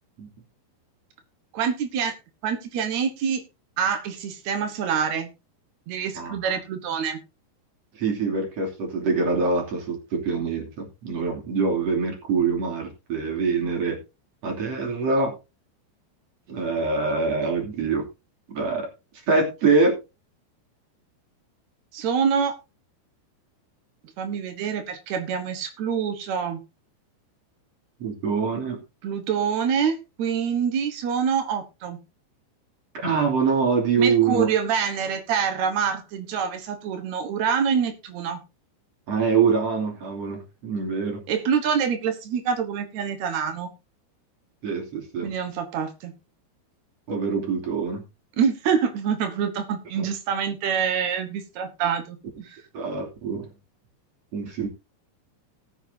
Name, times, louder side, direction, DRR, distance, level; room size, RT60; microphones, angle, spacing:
voice 1, 1.5-2.2 2.4-3.4 3.8-5.3 5.9-7.2 21.9-22.5 24.2-26.6 29.0-32.0 34.0-38.4 41.3-43.7 45.2-46.1 48.4-52.6, right 7 dB, 85° right, 6 dB, 1.5 m, -26 dB
voice 2, 6.1-6.5 7.9-14.0 14.4-15.3 16.5-18.1 18.5-18.9 19.3-20.0 28.0-28.8 33.0-34.5 39.1-41.2 44.6-45.3 47.1-48.0 50.0-50.1 52.7-53.5 54.3-54.7, right 4 dB, 40° right, 1 dB, 3.4 m, -24 dB
19.0 x 8.0 x 2.8 m, 0.27 s
omnidirectional pair, 5.4 m